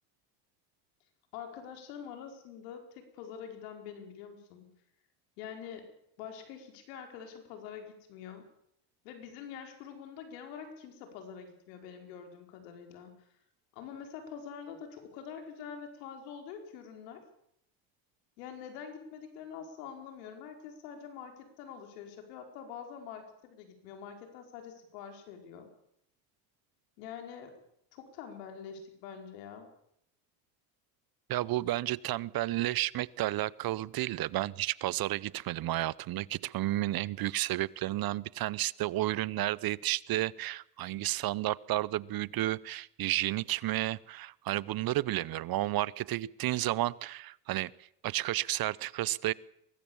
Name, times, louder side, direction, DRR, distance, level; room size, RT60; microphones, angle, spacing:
voice 1, 1.3-4.7 5.4-5.9 6.2-8.5 9.0-13.2 13.7-17.2 18.4-25.7 27.0-27.6 27.9-29.7, left 7 dB, 85° left, 4 dB, 4.9 m, -45 dB
voice 2, 31.3-47.7 48.0-49.3, right 15 dB, 50° right, 21 dB, 0.8 m, -32 dB
23.5 x 18.5 x 7.2 m, 0.73 s
supercardioid pair, 90°, 48 cm